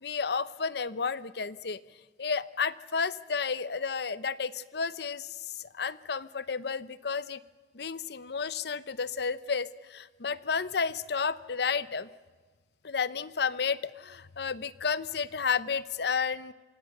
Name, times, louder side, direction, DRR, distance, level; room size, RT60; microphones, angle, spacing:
voice 1, 0.0-1.8 2.2-5.3 5.5-7.4 7.7-12.1 12.8-16.5, left 5 dB, 65° left, 16 dB, 0.8 m, -32 dB
27.0 x 24.5 x 6.6 m, 1.4 s
head